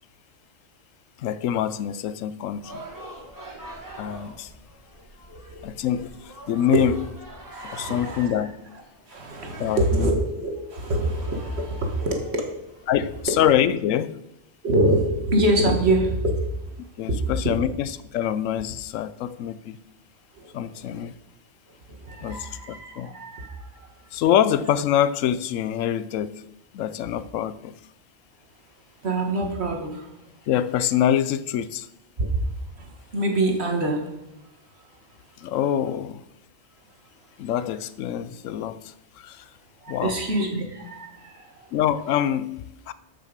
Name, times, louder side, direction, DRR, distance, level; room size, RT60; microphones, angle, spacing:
voice 1, 1.2-2.8 4.0-4.5 5.6-6.1 6.5-7.0 7.7-8.5 9.6-10.1 12.9-14.2 17.0-19.8 20.5-21.1 22.2-23.1 24.1-26.4 26.7-27.7 30.5-31.9 35.4-36.2 37.4-38.8 39.2-39.4 39.9-40.1 41.7-42.9, left 10 dB, 85° left, 1.0 m, -25 dB
sound 1, 2.5-13.5, right 1 dB, 15° right, 1.7 m, -45 dB
voice 2, 5.3-5.7 6.7-6.8 7.5-8.5 9.1-12.4 14.6-16.7 17.1-17.3 20.3-20.9 21.7-24.0 29.0-30.2 32.2-32.3 32.8-34.1 34.4-35.0 35.4-35.5 39.8-41.7, right 1 dB, 55° right, 1.8 m, -26 dB
13.0 x 6.2 x 5.1 m
omnidirectional pair, 1.3 m